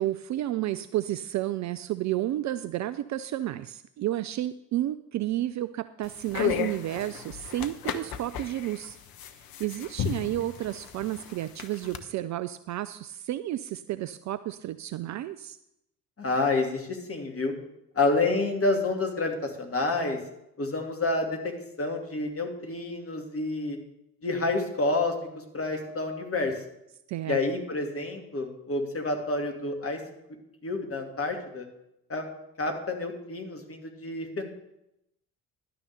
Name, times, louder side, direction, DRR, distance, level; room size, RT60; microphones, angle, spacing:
voice 1, 0.0-9.0 9.6-15.6 27.1-27.4, right 14 dB, 40° right, 14 dB, 0.4 m, -31 dB
sound 1, 6.0-12.0, left 9 dB, 50° left, 1.0 m, -34 dB
voice 2, 16.2-17.5 17.9-20.2 20.6-23.8 24.2-26.5 27.3-30.0 30.6-31.7 32.1-32.2 32.6-34.5, left 2 dB, 30° left, 3 dB, 2.5 m, -29 dB
11.5 x 6.6 x 6.7 m, 0.83 s
figure-of-eight pair, 50°, 46 cm